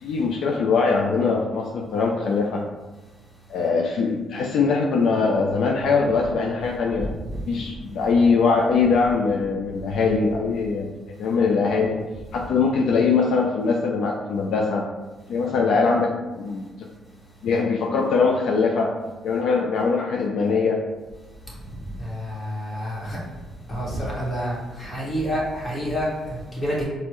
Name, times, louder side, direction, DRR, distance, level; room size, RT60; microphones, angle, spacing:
voice 1, 0.0-2.6 3.5-7.1 7.5-10.9 11.2-12.0 12.3-14.8 15.3-16.7 17.4-18.9 19.2-20.8, left 4 dB, 75° left, -1 dB, 0.3 m, -22 dB
voice 2, 22.0-23.2 23.7-26.8, equal, 30° left, -5 dB, 1.2 m, -28 dB
4.2 x 2.1 x 3.0 m, 1.2 s
cardioid pair, 90°, 0 cm